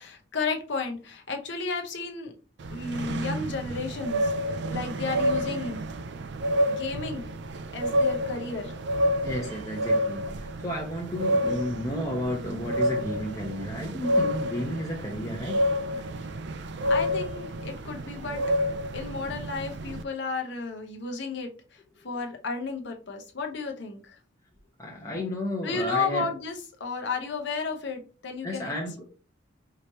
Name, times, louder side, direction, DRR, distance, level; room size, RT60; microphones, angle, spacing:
voice 1, 0.0-2.3 2.7-5.8 6.7-7.3 7.7-8.8 16.9-18.4 18.9-24.2 25.6-28.7, left 4 dB, 60° left, 3 dB, 0.8 m, -33 dB
sound 1, 2.6-20.0, equal, 60° right, 0.4 m, -29 dB
voice 2, 9.2-15.6 16.0-16.1 24.8-26.3 28.4-29.0, left 1 dB, 15° left, -3 dB, 0.8 m, -32 dB
4.9 x 3.1 x 2.9 m, 0.36 s
head